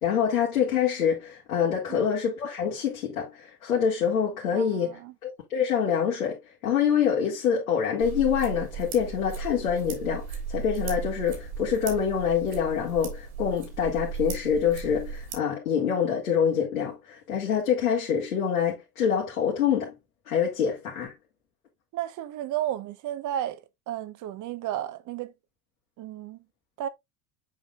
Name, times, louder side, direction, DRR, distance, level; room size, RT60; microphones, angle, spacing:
voice 1, 0.0-19.9 20.3-21.1, left 7 dB, 80° left, 2.1 m, -26 dB
voice 2, 4.5-5.1 21.9-23.6 23.9-25.3 26.0-26.4 26.8-26.9, right 12 dB, 45° right, 1.0 m, -33 dB
sound 1, 8.0-15.3, right 5 dB, 70° right, 3.2 m, -36 dB
7.8 x 5.5 x 2.3 m
hypercardioid pair, 70°, 42 cm